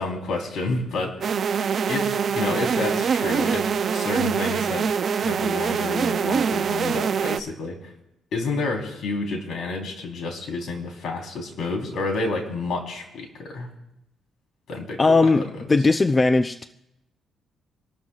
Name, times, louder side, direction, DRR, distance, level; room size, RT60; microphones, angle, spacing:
voice 1, 0.0-1.4 1.9-7.9 8.3-13.7 14.7-15.5, left 3 dB, 70° left, 1 dB, 3.8 m, -30 dB
sound 1, 1.2-7.4, right 6 dB, 55° right, 0.6 m, -24 dB
voice 2, 15.0-15.4 15.7-16.6, left 3 dB, 25° left, 9 dB, 0.5 m, -18 dB
26.5 x 12.5 x 2.4 m, 0.87 s
cardioid pair, 90°, 0 cm